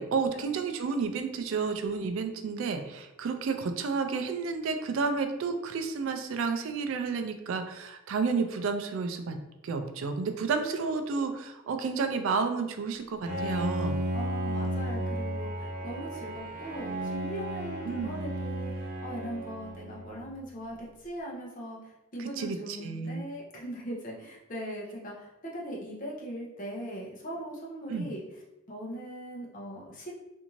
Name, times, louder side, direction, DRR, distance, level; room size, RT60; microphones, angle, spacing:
voice 1, 0.0-9.4 9.6-14.0 14.9-15.2 17.8-18.2 22.2-23.3 27.9-28.1, right 4 dB, 65° right, 6 dB, 0.3 m, -31 dB
Bowed string instrument, 13.3-20.4, right 1 dB, 40° right, 0.7 m, -34 dB
voice 2, 14.1-21.8 22.1-28.2 28.7-30.1, right 1 dB, 40° left, -3 dB, 0.7 m, -40 dB
2.6 x 2.5 x 2.9 m, 0.95 s
head